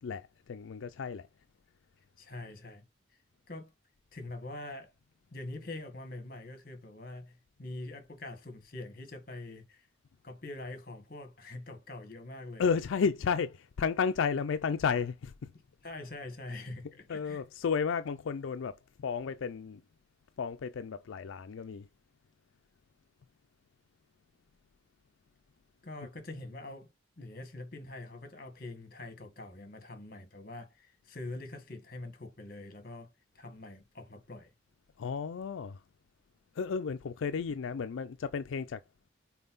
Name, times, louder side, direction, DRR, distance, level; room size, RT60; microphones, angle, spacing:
voice 1, 0.0-1.3 12.6-15.5 17.1-19.8 20.4-21.9 35.0-35.8 36.6-38.8, left 6 dB, 80° left, 0.4 m, -32 dB
voice 2, 2.2-2.8 3.5-3.7 4.1-4.9 5.3-9.9 10.2-12.7 15.8-17.4 25.8-26.9 27.2-33.1 33.3-34.5, left 2 dB, 45° left, 1.7 m, -44 dB
5.6 x 4.3 x 4.0 m
head